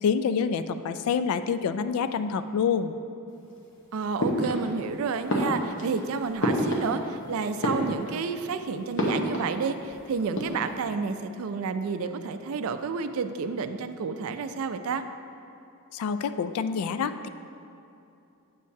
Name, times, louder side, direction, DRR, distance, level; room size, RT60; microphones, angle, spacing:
voice 1, 0.0-3.0 15.9-17.3, left 6 dB, 80° left, 12 dB, 0.3 m, -27 dB
voice 2, 3.9-15.0, right 5 dB, 70° right, 10 dB, 0.4 m, -30 dB
sound 1, 4.2-4.9 5.3-7.2 7.5-8.4 9.0-9.9 10.2-10.8, equal, 60° left, 1.0 m, -29 dB
8.5 x 6.4 x 2.7 m, 2.7 s
head